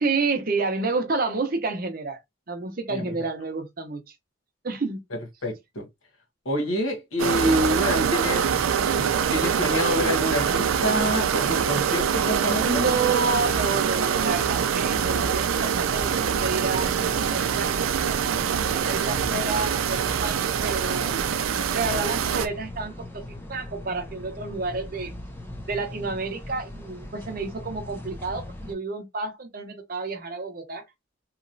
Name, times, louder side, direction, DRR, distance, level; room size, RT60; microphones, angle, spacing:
voice 1, 0.0-2.2 2.5-4.1 4.6-5.0 12.6-16.9 17.2-17.7 18.1-21.2 21.7-25.1 25.7-30.8, right 3 dB, 45° right, 0.6 m, -30 dB
voice 2, 5.4-5.9 6.4-8.6 8.9-12.8, left 1 dB, 85° left, 1.2 m, -27 dB
sound 1, 7.2-22.5, right 7 dB, 80° right, 0.4 m, -24 dB
sound 2, 14.8-28.7, left 1 dB, 10° left, 0.5 m, -40 dB
3.0 x 2.9 x 2.5 m
head